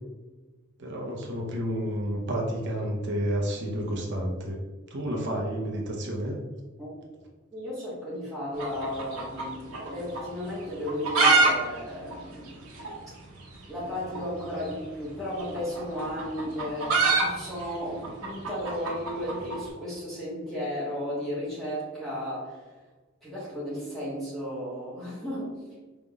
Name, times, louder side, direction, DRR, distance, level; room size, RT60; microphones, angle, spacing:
voice 1, 0.8-4.6 4.9-6.4, equal, 55° right, -1 dB, 0.9 m, -30 dB
voice 2, 7.5-12.7 13.1-13.2 13.7-22.7 23.2-25.5, equal, ahead, -10 dB, 1.3 m, -34 dB
sound 1, 8.5-9.9 10.1-10.2 10.8-11.5 11.8-11.9 12.1-12.2 12.8-12.9 14.1-14.3 15.4-19.6, right 3 dB, 75° right, 1.2 m, -24 dB
5.1 x 3.6 x 2.4 m, 1.3 s
head